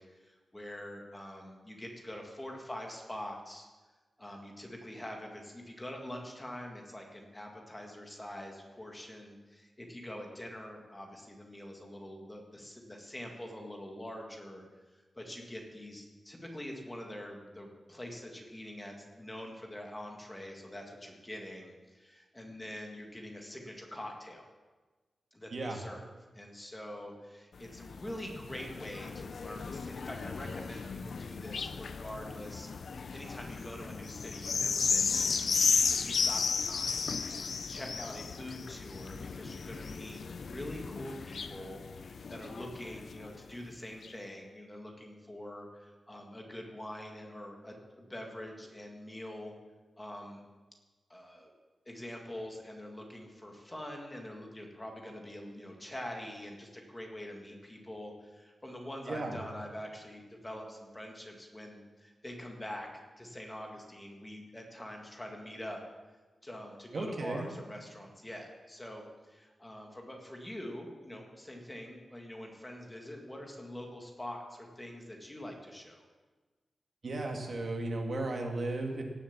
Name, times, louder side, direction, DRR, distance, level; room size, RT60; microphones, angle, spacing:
voice 1, 0.0-3.7 4.2-14.6 14.9-24.5 25.3-49.5 50.0-50.4 51.1-51.5 51.9-65.8 66.4-76.0, left 1 dB, 15° left, 1 dB, 1.8 m, -45 dB
sound 1, 27.6-43.4 44.0-44.1, left 5 dB, 65° left, 0.5 m, -34 dB
voice 2, 59.1-59.4 66.9-67.5 77.0-79.0, right 2 dB, 50° right, 2 dB, 2.0 m, -35 dB
17.5 x 7.2 x 7.3 m, 1.3 s
wide cardioid pair, 155°, 0 cm